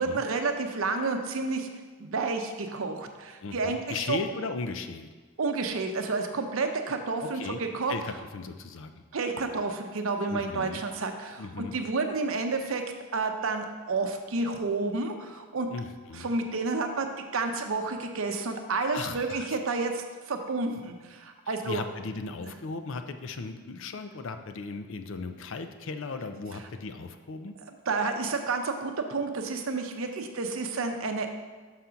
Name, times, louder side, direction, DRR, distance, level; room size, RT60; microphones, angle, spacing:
voice 1, 0.0-1.7 2.0-4.2 5.4-7.9 9.1-12.8 13.1-15.7 16.1-17.1 17.3-21.8 27.9-31.4, right 3 dB, 75° right, 5 dB, 0.6 m, -30 dB
voice 2, 3.4-5.1 7.2-7.6 7.9-9.0 10.3-10.8 11.4-11.7 15.7-16.3 18.9-19.6 21.5-27.5, left 4 dB, 65° left, 8 dB, 0.5 m, -37 dB
5.8 x 3.8 x 5.7 m, 1.4 s
head